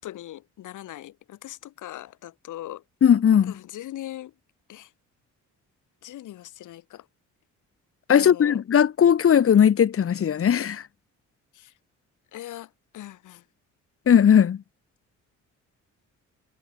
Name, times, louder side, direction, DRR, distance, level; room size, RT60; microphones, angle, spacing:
voice 1, 0.0-2.8 3.5-4.3 4.7-4.9 6.0-7.1 8.1-8.6 11.5-11.7 12.3-13.5, left 13 dB, 80° left, 6.8 m, -40 dB
voice 2, 3.0-3.5 8.1-10.8 14.1-14.6, left 8 dB, 50° left, 1.5 m, -18 dB
cardioid pair, 90°, 30 cm